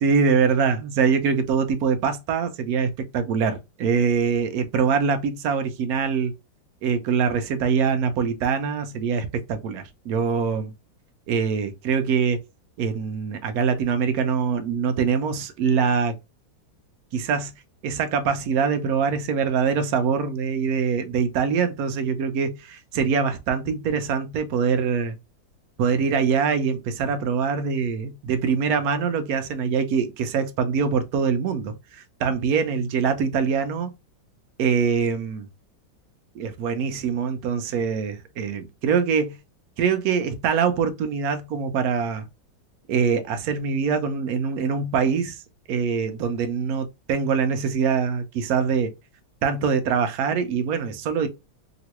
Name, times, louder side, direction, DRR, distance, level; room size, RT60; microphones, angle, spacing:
voice 1, 0.0-6.3 6.8-10.7 11.3-12.4 12.8-16.1 17.1-17.5 17.8-25.2 25.8-33.9 34.6-35.5 36.3-39.4 39.8-42.3 42.9-45.4 45.7-48.9 49.4-51.3, right 6 dB, 75° right, 0.8 m, -24 dB
3.0 x 3.0 x 2.8 m
omnidirectional pair, 2.1 m